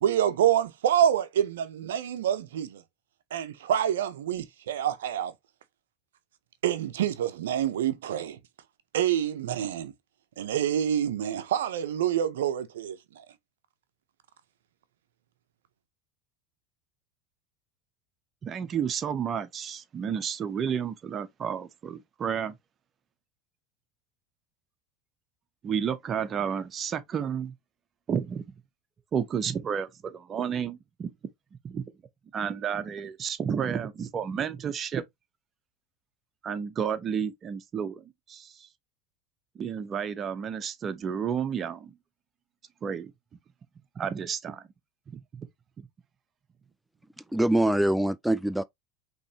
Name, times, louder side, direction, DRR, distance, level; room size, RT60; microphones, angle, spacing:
voice 1, 0.0-2.8 3.3-5.3 6.6-8.4 8.9-9.9 10.4-13.0, right 10 dB, 80° right, 0.6 m, -27 dB
voice 2, 18.4-22.6 25.6-27.5 28.1-28.4 29.1-31.1 31.6-31.8 32.3-35.0 36.4-38.7 39.5-41.9 42.8-43.1 43.9-44.6 45.1-45.2 45.8-45.9, right 7 dB, 35° right, 0.9 m, -31 dB
voice 3, 47.3-48.6, right 1 dB, 5° right, 0.3 m, -24 dB
5.4 x 3.1 x 2.8 m
hypercardioid pair, 90°, 0 cm